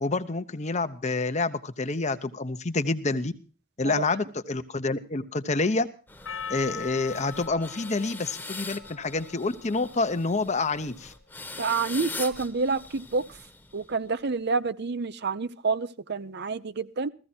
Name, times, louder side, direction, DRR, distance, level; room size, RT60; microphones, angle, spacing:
voice 1, 0.0-3.3 3.8-5.9 6.5-11.1, left 3 dB, 35° left, 11 dB, 0.8 m, -28 dB
sound 1, 6.1-14.1, left 3 dB, 10° left, 1.2 m, -42 dB
Percussion, 6.3-10.6, left 6 dB, 60° left, 0.8 m, -41 dB
voice 2, 11.6-13.2 13.7-17.1, right 4 dB, 50° right, 14 dB, 0.7 m, -28 dB
15.5 x 15.0 x 4.4 m, 0.36 s
head